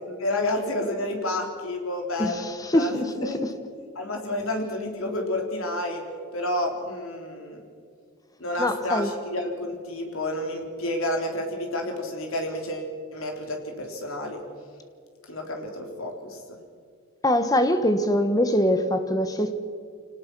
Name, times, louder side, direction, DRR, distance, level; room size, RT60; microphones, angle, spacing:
voice 1, 0.0-3.5 4.0-6.0 6.3-7.6 8.4-14.4 15.3-16.6, left 1 dB, 70° left, 2 dB, 3.6 m, -30 dB
voice 2, 2.2-3.5 8.6-9.1 17.2-19.5, left 1 dB, 15° left, 9 dB, 1.2 m, -23 dB
25.5 x 18.5 x 6.2 m, 2.2 s
head